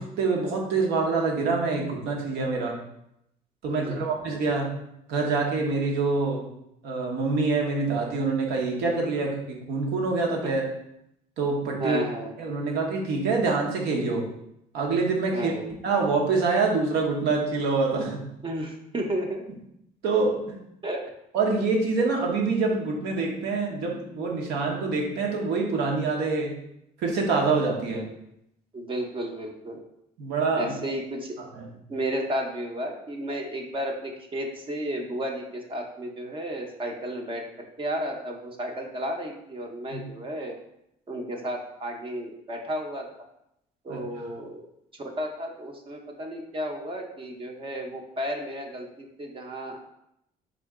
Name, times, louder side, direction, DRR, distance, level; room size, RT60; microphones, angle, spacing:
voice 1, 0.0-2.8 3.6-4.7 5.1-6.5 6.8-10.6 11.4-12.0 12.4-14.3 14.7-15.5 15.8-18.2 20.0-20.6 21.3-26.5 27.0-28.0 30.2-30.7 31.5-31.7 39.9-40.0 43.9-44.0, right 4 dB, 80° right, 0 dB, 0.9 m, -26 dB
voice 2, 3.7-4.1 10.4-10.5 11.8-12.3 15.3-15.7 18.4-19.4 20.8-21.0 27.9-28.0 28.7-29.8 30.6-31.4 31.9-37.4 37.8-40.5 41.1-43.1 43.8-44.6 45.0-49.8, right 1 dB, 30° right, 2 dB, 0.6 m, -33 dB
3.7 x 2.8 x 3.5 m, 0.79 s
cardioid pair, 110°, 17 cm